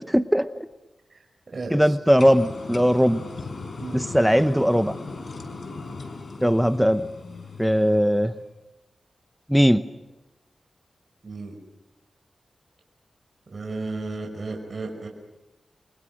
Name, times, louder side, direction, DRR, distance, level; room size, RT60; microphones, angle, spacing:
voice 1, 0.1-0.5 1.7-3.2 3.9-5.0 6.4-7.1 7.6-8.3 9.5-9.8, equal, ahead, 11 dB, 0.8 m, -19 dB
voice 2, 1.5-1.9 3.8-4.0 11.2-11.6 13.5-15.1, right 3 dB, 45° right, 1 dB, 5.5 m, -33 dB
sound 1, 2.2-8.5, left 3 dB, 60° left, 4.4 m, -38 dB
29.5 x 23.5 x 6.4 m, 1.1 s
cardioid pair, 75°, 0 cm